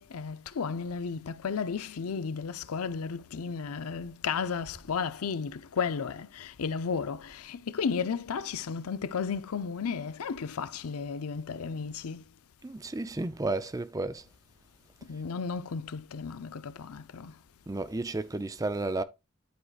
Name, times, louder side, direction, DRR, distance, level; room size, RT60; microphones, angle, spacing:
voice 1, 0.0-12.2 15.1-17.3, left 6 dB, 80° left, 0.5 m, -33 dB
voice 2, 12.6-14.2 17.7-19.0, right 2 dB, 15° right, 0.4 m, -32 dB
11.0 x 4.7 x 2.4 m
head